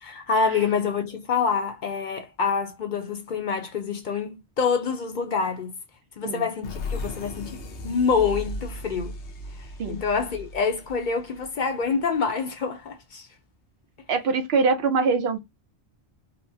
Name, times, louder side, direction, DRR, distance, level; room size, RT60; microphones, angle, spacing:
voice 1, 0.0-5.7 6.2-9.2 9.9-13.3, left 5 dB, 55° left, 0.6 m, -26 dB
sound 1, 6.6-12.1, left 1 dB, 90° left, 1.0 m, -36 dB
voice 2, 14.1-15.4, right 4 dB, 65° right, 0.9 m, -23 dB
4.2 x 2.0 x 2.6 m
omnidirectional pair, 1.1 m